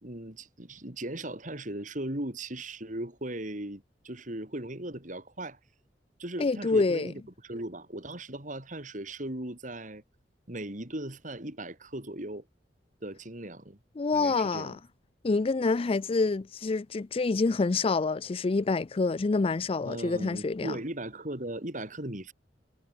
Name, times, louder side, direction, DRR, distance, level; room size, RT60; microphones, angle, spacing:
voice 1, 0.0-5.6 6.2-10.0 10.5-12.5 13.0-13.8 14.1-14.7 19.8-22.3, right 1 dB, 45° right, 4.4 m, -38 dB
voice 2, 6.4-7.1 14.0-14.7 15.2-20.7, left 3 dB, 35° left, 0.4 m, -27 dB
head